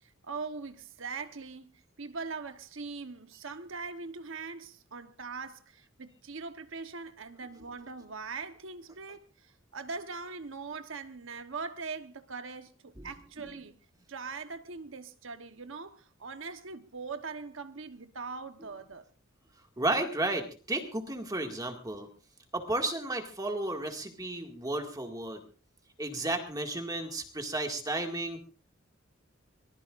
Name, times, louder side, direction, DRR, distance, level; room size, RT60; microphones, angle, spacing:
voice 1, 0.0-13.7 14.1-19.0, right 4 dB, 70° right, 1.1 m, -41 dB
voice 2, 19.8-22.1 22.5-25.4 26.0-28.4, right 2 dB, 20° right, 2.0 m, -33 dB
24.5 x 19.5 x 2.5 m
head